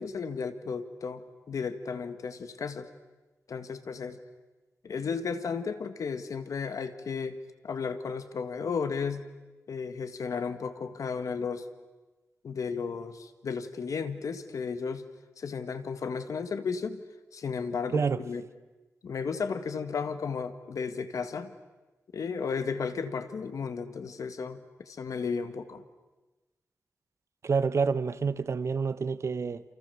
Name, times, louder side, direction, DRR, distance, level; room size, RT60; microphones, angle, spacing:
voice 1, 0.0-2.9 3.5-4.2 4.8-7.4 7.6-9.3 9.7-11.7 12.4-15.0 15.4-17.0 17.3-18.4 19.0-21.5 22.1-25.8, left 5 dB, 85° left, 1.8 m, -34 dB
voice 2, 27.4-29.6, right 5 dB, 60° right, 1.1 m, -28 dB
28.5 x 28.5 x 7.0 m
wide cardioid pair, 115°, 6 cm